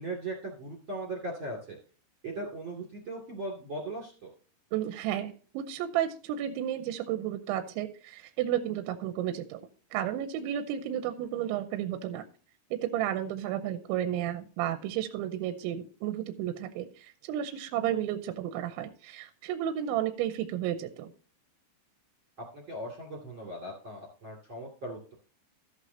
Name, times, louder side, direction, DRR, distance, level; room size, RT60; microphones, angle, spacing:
voice 1, 0.0-1.8 2.2-4.3 22.5-25.1, right 1 dB, 40° right, 0 dB, 2.1 m, -38 dB
voice 2, 4.7-9.6 9.9-12.2 12.7-21.1, right 11 dB, 80° right, 9 dB, 2.9 m, -32 dB
14.0 x 8.3 x 2.8 m, 0.39 s
omnidirectional pair, 5.7 m